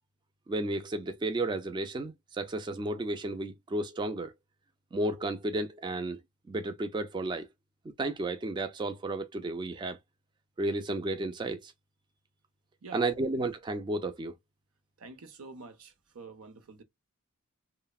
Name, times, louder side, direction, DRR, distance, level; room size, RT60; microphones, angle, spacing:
voice 1, 0.5-4.3 4.9-6.2 6.5-7.5 8.0-10.0 10.6-11.7 12.9-14.3, right 2 dB, 20° right, 0.3 m, -32 dB
voice 2, 15.0-16.8, right 4 dB, 80° right, 0.6 m, -47 dB
3.1 x 2.0 x 2.3 m
head